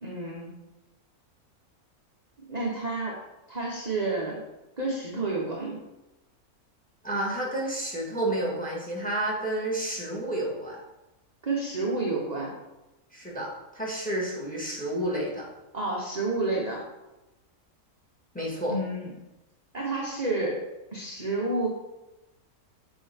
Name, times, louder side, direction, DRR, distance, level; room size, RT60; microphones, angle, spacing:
voice 1, 0.0-0.6 2.5-3.2 3.5-4.4 4.8-5.8 11.4-12.5 15.7-16.8 18.7-19.1 19.7-21.7, right 2 dB, 30° right, -3 dB, 0.9 m, -30 dB
voice 2, 7.0-10.8 13.1-15.5 18.3-18.7, right 1 dB, 5° left, -4 dB, 1.6 m, -30 dB
6.8 x 5.2 x 3.5 m, 0.99 s
omnidirectional pair, 1.6 m